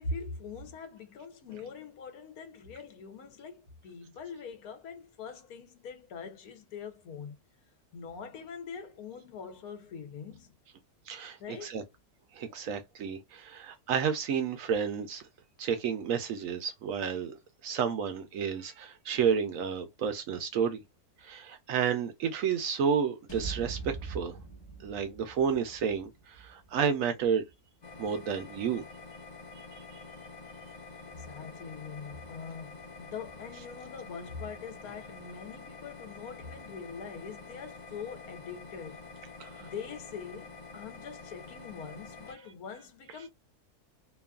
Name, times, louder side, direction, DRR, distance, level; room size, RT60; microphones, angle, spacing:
voice 1, 0.0-7.3 7.9-10.5 11.4-11.8 31.0-39.0 39.6-43.3, left 5 dB, 75° left, 1.2 m, -43 dB
voice 2, 11.1-11.8 12.3-15.2 15.6-17.3 17.6-20.8 21.2-24.4 24.8-27.4 28.0-28.8 39.4-39.7, right 7 dB, 70° right, 0.9 m, -31 dB
sound 1, 23.3-27.5, right 4 dB, 20° left, 0.8 m, -43 dB
sound 2, 27.8-42.4, left 4 dB, 45° left, 0.5 m, -47 dB
2.9 x 2.3 x 2.3 m
omnidirectional pair, 1.6 m